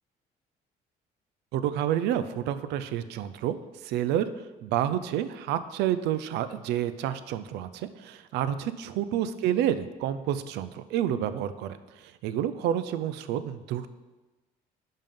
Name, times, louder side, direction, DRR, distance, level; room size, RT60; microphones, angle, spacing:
voice 1, 1.5-3.6 3.8-13.9, right 10 dB, 85° right, 12 dB, 0.5 m, -29 dB
5.5 x 5.3 x 5.4 m, 1.2 s
cardioid pair, 110°, 17 cm